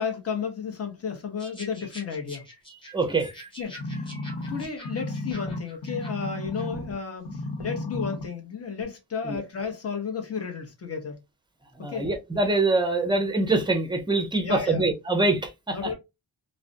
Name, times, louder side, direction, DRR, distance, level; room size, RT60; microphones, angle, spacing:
voice 1, 0.0-2.4 3.6-11.2 11.9-12.1 14.4-14.9 15.7-15.9, left 6 dB, 35° left, 0.8 m, -33 dB
sound 1, 1.4-6.7, equal, 10° left, 1.1 m, -46 dB
voice 2, 2.9-3.3 9.2-9.4 11.8-15.9, right 2 dB, 10° right, 0.5 m, -24 dB
sound 2, 3.8-6.9 7.3-8.3 8.8-8.9, left 1 dB, 80° left, 1.0 m, -33 dB
2.4 x 2.1 x 2.5 m
wide cardioid pair, 125°, 42 cm